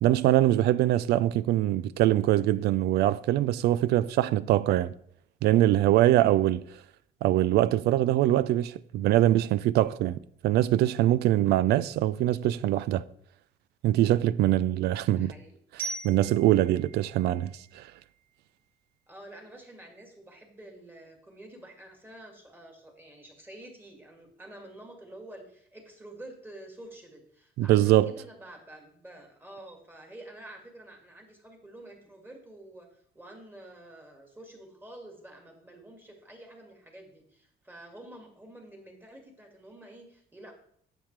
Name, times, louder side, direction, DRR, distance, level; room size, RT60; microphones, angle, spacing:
voice 1, 0.0-4.9 5.4-6.6 7.2-13.0 13.8-15.3 16.0-17.5 17.7-17.9 27.6-28.1, right 13 dB, 75° right, 0.4 m, -23 dB
voice 2, 15.1-15.6 19.1-40.5, right 1 dB, 10° right, 2.2 m, -48 dB
Glockenspiel, 15.8-18.6, right 4 dB, 55° right, 3.1 m, -42 dB
8.9 x 7.4 x 3.3 m
cardioid pair, 110°, 17 cm